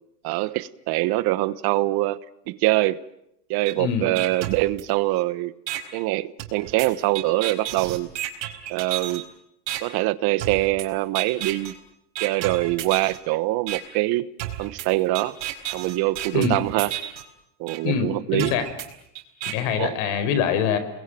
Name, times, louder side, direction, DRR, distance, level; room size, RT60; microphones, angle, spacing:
voice 1, 0.2-2.2 2.5-3.0 3.5-5.5 5.9-8.1 8.7-9.3 9.8-11.7 12.2-14.3 14.6-15.4 15.7-16.9 17.6-18.5 19.8-20.0, right 18 dB, 50° right, 1.1 m, -24 dB
sound 1, 3.7-3.8 4.2-5.2 5.7-5.8 6.4-9.2 9.7-9.8 10.4-10.9 11.2-11.7 12.2-13.2 13.7-13.8 14.4-17.2 17.7-17.8 18.4-19.5, right 13 dB, 80° right, 4.8 m, -32 dB
voice 2, 17.8-18.7 19.5-20.8, left 7 dB, 65° left, 4.9 m, -24 dB
29.5 x 21.5 x 9.2 m
supercardioid pair, 130°, 49 cm